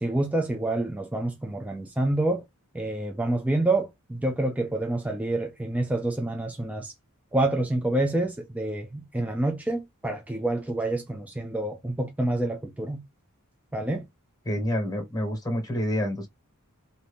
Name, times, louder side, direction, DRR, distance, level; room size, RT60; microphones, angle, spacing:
voice 1, 0.0-2.4 2.7-6.9 7.3-13.0 13.7-14.0, right 2 dB, 5° right, 0.4 m, -27 dB
voice 2, 14.4-16.3, equal, 15° left, 1.2 m, -28 dB
2.7 x 2.7 x 3.4 m
head